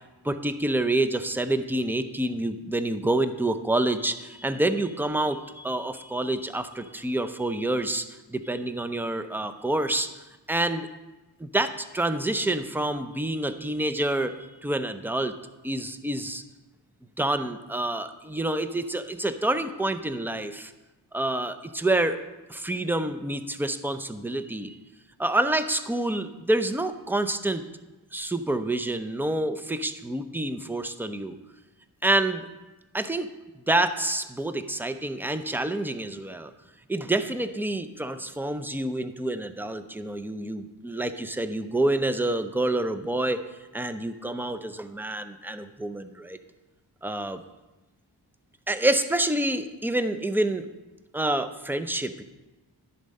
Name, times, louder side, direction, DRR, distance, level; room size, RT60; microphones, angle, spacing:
voice 1, 0.2-10.1 10.5-10.9 11.4-14.4 14.6-15.3 15.6-16.4 17.2-20.7 21.1-22.2 22.5-24.8 25.2-27.6 28.1-31.4 32.0-32.5 32.9-33.3 33.7-36.5 36.9-43.4 43.7-46.4 47.0-47.4 48.7-50.7 51.1-52.2, right 1 dB, 5° right, 9 dB, 0.6 m, -27 dB
10.5 x 4.2 x 6.6 m, 1.1 s
cardioid pair, 55°, 42 cm